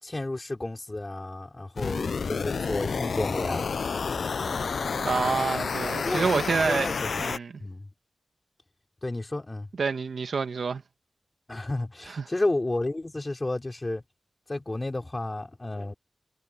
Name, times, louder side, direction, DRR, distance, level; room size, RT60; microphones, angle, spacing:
voice 1, 0.0-4.1 4.4-5.3 6.0-7.2 7.6-7.9 9.0-9.7 11.5-14.0 14.5-15.9, left 2 dB, 25° left, 5.2 m, -32 dB
sound 1, 1.8-7.4, left 5 dB, 75° left, 0.4 m, -30 dB
voice 2, 4.9-7.6 9.8-10.8 12.2-12.3, right 5 dB, 75° right, 1.3 m, -28 dB
wide cardioid pair, 130°, 0 cm